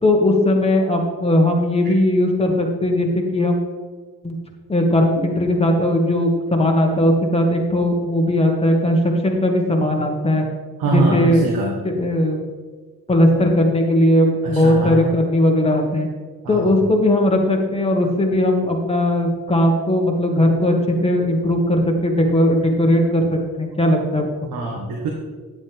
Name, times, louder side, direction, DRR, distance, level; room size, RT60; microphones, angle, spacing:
voice 1, 0.0-3.6 4.2-4.4 4.7-10.4 10.8-11.5 11.8-12.4 13.1-16.1 16.5-24.5, left 1 dB, 15° left, 1 dB, 1.8 m, -18 dB
voice 2, 10.8-11.8 14.5-15.1 16.4-16.7 24.5-25.1, right 3 dB, 80° right, -2 dB, 1.7 m, -23 dB
10.0 x 8.1 x 3.5 m, 1.4 s
cardioid pair, 95°, 34 cm